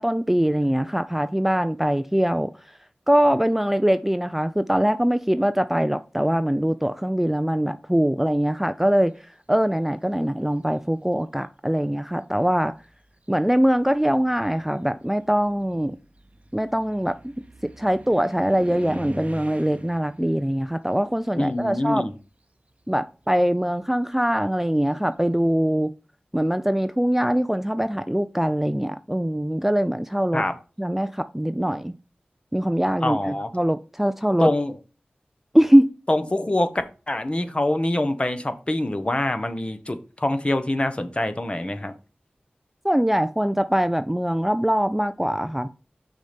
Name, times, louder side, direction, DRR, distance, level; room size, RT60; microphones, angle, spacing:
voice 1, 0.0-2.5 3.1-9.2 9.5-12.7 13.3-16.0 16.5-17.3 17.6-22.1 22.9-25.9 26.3-30.4 30.8-31.9 32.5-34.5 35.5-35.9 42.8-45.7, equal, 5° right, 0.4 m, -22 dB
sound 1, 10.2-10.8 11.8-11.9 12.4-22.4 22.6-25.3, right 2 dB, 40° right, 0.8 m, -45 dB
voice 2, 21.4-22.1 30.3-30.5 33.0-33.5 34.4-34.8 36.1-36.7 37.1-41.9, left 1 dB, 30° left, 1.0 m, -25 dB
6.3 x 4.2 x 5.1 m
cardioid pair, 45°, 3 cm